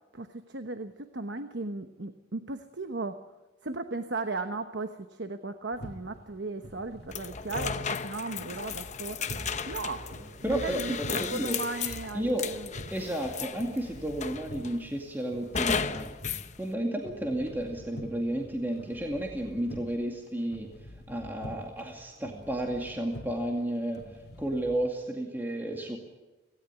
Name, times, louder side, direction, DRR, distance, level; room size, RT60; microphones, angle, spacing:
voice 1, 0.1-3.2 3.6-10.1 10.4-12.7, right 3 dB, 65° right, 8 dB, 1.1 m, -36 dB
sound 1, 5.7-24.8, equal, 60° left, 2.6 m, -47 dB
sound 2, 7.1-13.8 14.2-14.8 15.5-16.5, left 6 dB, 40° left, 0.9 m, -34 dB
sound 3, 9.0-14.4, right 1 dB, 40° right, 6.8 m, -48 dB
voice 2, 10.4-11.6 12.1-12.5 12.9-16.1 16.6-20.7 21.1-26.0, right 1 dB, 10° right, 1 dB, 2.2 m, -32 dB
17.5 x 17.5 x 10.0 m, 1.2 s
head